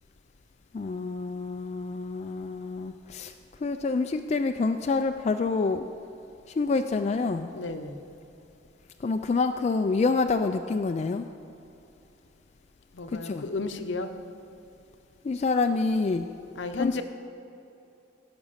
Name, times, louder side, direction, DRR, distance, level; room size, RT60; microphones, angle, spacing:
voice 1, 0.7-3.3 3.6-5.9 6.5-7.5 9.0-11.3 13.1-13.5 15.2-16.3 16.8-17.0, left 4 dB, 35° left, 6 dB, 0.3 m, -27 dB
voice 2, 7.5-8.0 12.9-14.1 16.5-17.0, left 3 dB, 70° left, 8 dB, 0.7 m, -32 dB
16.5 x 6.0 x 5.6 m, 2.7 s
head